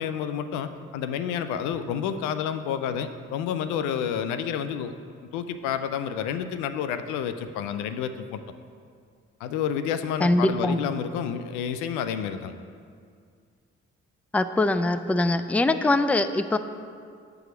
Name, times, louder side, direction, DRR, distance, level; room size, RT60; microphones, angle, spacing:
voice 1, 0.0-4.9 5.3-8.4 9.4-12.5, left 8 dB, 85° left, 10 dB, 0.5 m, -29 dB
voice 2, 10.2-10.9 14.3-16.6, left 2 dB, 5° left, 11 dB, 0.4 m, -23 dB
7.8 x 4.8 x 6.1 m, 2.2 s
supercardioid pair, 55°, 29 cm